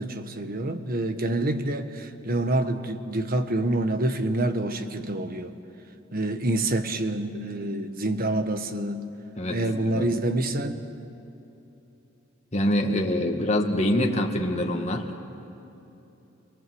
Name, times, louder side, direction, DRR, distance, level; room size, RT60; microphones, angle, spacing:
voice 1, 0.0-5.5 6.1-9.1 9.5-10.9 13.2-13.3, right 1 dB, 45° right, 8 dB, 1.4 m, -27 dB
voice 2, 12.5-15.1, left 1 dB, 35° left, 2 dB, 2.0 m, -25 dB
27.0 x 23.0 x 7.9 m, 3.0 s
head